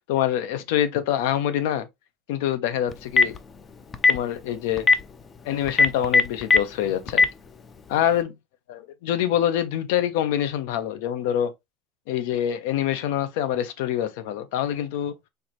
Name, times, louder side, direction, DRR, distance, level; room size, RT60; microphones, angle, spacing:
voice 1, 0.0-1.9 2.3-3.4 4.1-4.9 5.4-7.3 7.9-8.3 8.7-11.5 12.1-15.1, left 10 dB, 80° left, 0.8 m, -25 dB
Telephone, 2.9-3.4 3.9-4.2 4.8-4.9 5.7-6.6 7.1-7.3, left 4 dB, 20° left, 0.4 m, -15 dB
4.6 x 3.2 x 3.0 m
cardioid pair, 170°, 0 cm